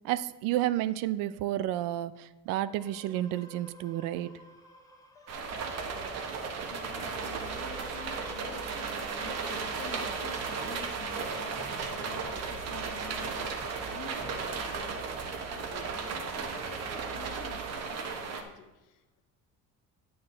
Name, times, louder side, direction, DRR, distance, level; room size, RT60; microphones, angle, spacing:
voice 1, 0.0-4.3, right 13 dB, 85° right, 0.5 m, -31 dB
sound 1, 2.7-12.3, left 1 dB, 10° left, 0.9 m, -52 dB
sound 2, 5.3-18.4, right 5 dB, 50° right, 1.1 m, -35 dB
sound 3, 5.5-17.7, right 6 dB, 20° right, 0.4 m, -46 dB
voice 2, 6.1-19.0, left 8 dB, 70° left, 1.0 m, -49 dB
8.8 x 7.8 x 3.8 m
cardioid pair, 130°, 32 cm